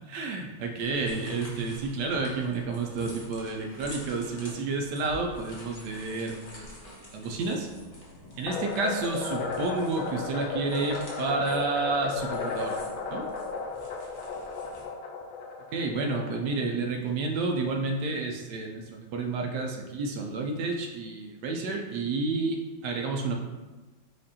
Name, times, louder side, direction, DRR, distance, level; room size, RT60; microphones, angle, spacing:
voice 1, 0.1-7.7 8.4-13.3 15.7-23.4, right 3 dB, 70° right, 2 dB, 1.0 m, -30 dB
sound 1, 0.8-14.8, left 1 dB, 35° left, 0.5 m, -48 dB
sound 2, 8.5-16.8, left 4 dB, 80° left, 1.3 m, -35 dB
5.0 x 2.5 x 4.1 m, 1.2 s
omnidirectional pair, 2.2 m